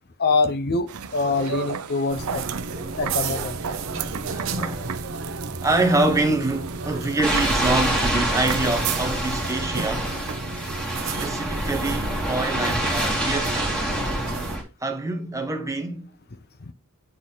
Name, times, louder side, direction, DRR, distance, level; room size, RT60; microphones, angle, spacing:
voice 1, 0.2-2.4 3.0-3.6, left 3 dB, 45° left, 0.7 m, -24 dB
sound 1, 0.9-9.5, right 8 dB, 90° right, 0.6 m, -34 dB
sound 2, 2.1-14.6, right 3 dB, 60° right, 1.1 m, -33 dB
voice 2, 2.7-4.9 5.6-10.1 11.0-13.8 14.8-16.1, right 2 dB, 15° right, 1.1 m, -26 dB
sound 3, 7.2-14.6, right 1 dB, 5° left, 2.5 m, -26 dB
9.6 x 4.3 x 3.9 m
head